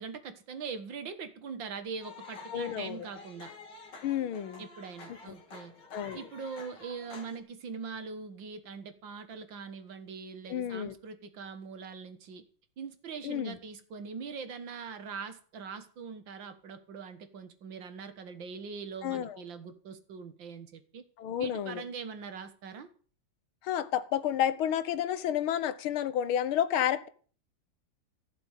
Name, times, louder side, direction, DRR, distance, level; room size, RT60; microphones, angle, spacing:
voice 1, 0.0-3.5 4.6-5.8 6.1-12.4 12.8-21.0 21.4-22.9, right 5 dB, 65° right, 10 dB, 2.1 m, -42 dB
sound 1, 2.0-7.4, left 3 dB, 60° left, 2.9 m, -49 dB
voice 2, 2.5-3.1 4.0-4.7 5.3-5.4 5.9-6.3 10.5-10.9 13.2-13.6 19.0-19.4 21.2-21.8 23.6-27.1, left 10 dB, 90° left, 14 dB, 1.9 m, -31 dB
15.0 x 7.1 x 9.1 m, 0.43 s
omnidirectional pair, 2.2 m